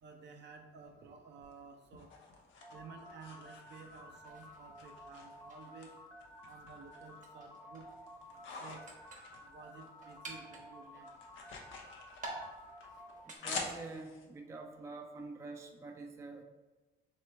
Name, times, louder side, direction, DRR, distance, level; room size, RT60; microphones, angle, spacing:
voice 1, 0.0-2.1 2.7-5.9 6.4-7.9 8.6-8.8 9.4-11.1, right 5 dB, 60° right, 4 dB, 0.6 m, -53 dB
sound 1, 1.4-4.3 4.8-5.9 6.2-7.2 7.6-10.2 10.4-14.3, left 4 dB, 75° left, 0.7 m, -47 dB
sound 2, 2.6-13.2, left 1 dB, 10° left, 0.7 m, -54 dB
sound 3, 4.2-13.4, right 2 dB, 40° right, 0.9 m, -52 dB
voice 2, 13.4-16.4, right 3 dB, 15° right, 4 dB, 0.3 m, -46 dB
3.2 x 2.9 x 4.4 m, 1.2 s
cardioid pair, 90°, 20 cm